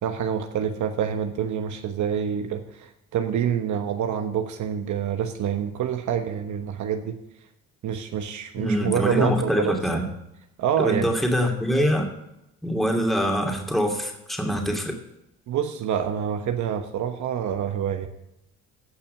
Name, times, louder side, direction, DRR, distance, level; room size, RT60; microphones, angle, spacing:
voice 1, 0.0-7.2 7.8-10.0 10.6-11.1 15.5-18.1, right 8 dB, 75° right, 7 dB, 1.1 m, -27 dB
voice 2, 8.6-10.1 10.8-12.1 12.6-15.0, equal, ahead, 2 dB, 2.6 m, -24 dB
16.0 x 5.7 x 6.7 m, 0.87 s
cardioid pair, 90°, 30 cm